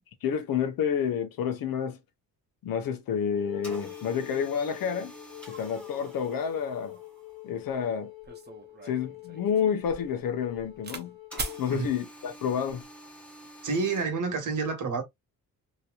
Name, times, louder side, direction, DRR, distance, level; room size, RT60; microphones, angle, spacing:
voice 1, 0.2-2.0 2.6-5.1 5.5-7.0 7.4-8.1 8.8-11.2 11.6-12.8, left 7 dB, 70° left, 0.8 m, -29 dB
Wind instrument woodwind instrument, 3.3-11.7, left 17 dB, 90° left, 1.3 m, -45 dB
sound 1, 3.6-7.6 11.3-14.0, right 1 dB, 5° left, 1.2 m, -48 dB
sound 2, 7.7-7.8 8.2-11.1 11.4-11.6 12.5-12.8, right 3 dB, 30° right, 0.8 m, -40 dB
voice 2, 13.6-15.0, right 4 dB, 55° right, 1.3 m, -28 dB
3.0 x 2.9 x 2.4 m
cardioid pair, 135°, 36 cm